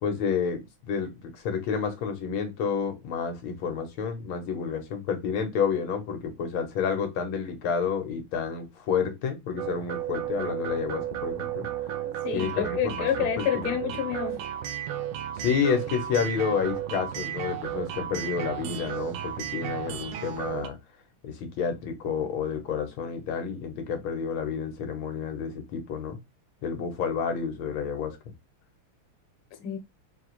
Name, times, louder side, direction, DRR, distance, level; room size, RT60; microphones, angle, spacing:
voice 1, 0.0-11.7 12.3-13.9 15.4-20.8 21.2-26.2 26.6-28.2, left 6 dB, 70° left, 1.8 m, -30 dB
sound 1, 9.6-20.7, right 11 dB, 75° right, 1.4 m, -33 dB
voice 2, 12.2-14.4 29.6-29.8, left 10 dB, 85° left, 1.8 m, -28 dB
4.4 x 2.9 x 3.0 m
omnidirectional pair, 2.4 m